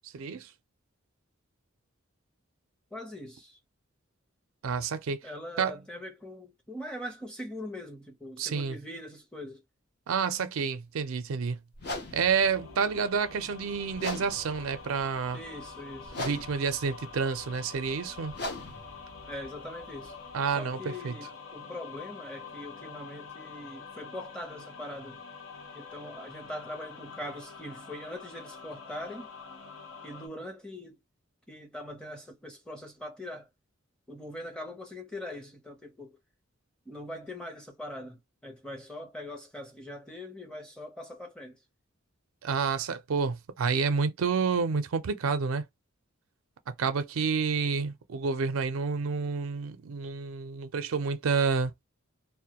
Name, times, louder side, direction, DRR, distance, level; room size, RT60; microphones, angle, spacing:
voice 1, 0.1-0.5 4.6-5.2 5.6-5.8 8.4-8.8 10.1-11.6 12.1-15.4 16.2-18.3 20.3-21.1 42.4-45.6 46.8-51.7, right 5 dB, 85° right, 0.4 m, -29 dB
voice 2, 2.9-3.6 5.2-9.6 15.3-16.3 19.3-20.2 20.6-25.2 25.7-29.3 30.0-31.0 31.5-33.5 34.1-36.2 36.9-41.6, left 1 dB, 5° left, 0.6 m, -42 dB
sound 1, 11.8-20.5, left 1 dB, 50° left, 0.7 m, -42 dB
sound 2, 12.3-30.3, left 5 dB, 85° left, 1.0 m, -46 dB
2.1 x 2.1 x 2.8 m
head